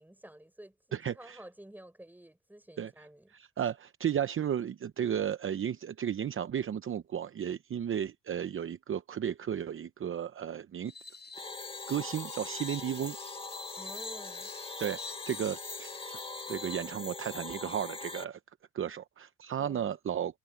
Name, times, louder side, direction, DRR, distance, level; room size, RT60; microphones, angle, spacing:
voice 1, 0.0-0.8 1.1-3.3 13.8-14.5 19.6-19.9, right 1 dB, 5° right, 5.6 m, -50 dB
voice 2, 0.9-1.4 2.8-2.9 3.3-10.9 11.4-11.5 11.9-13.2 14.8-16.2 16.5-18.4 18.7-20.4, right 9 dB, 45° right, 0.8 m, -34 dB
Screech, 10.9-16.9, left 4 dB, 35° left, 7.9 m, -46 dB
sound 1, 11.3-18.2, left 3 dB, 20° left, 1.2 m, -42 dB
cardioid pair, 90°, 30 cm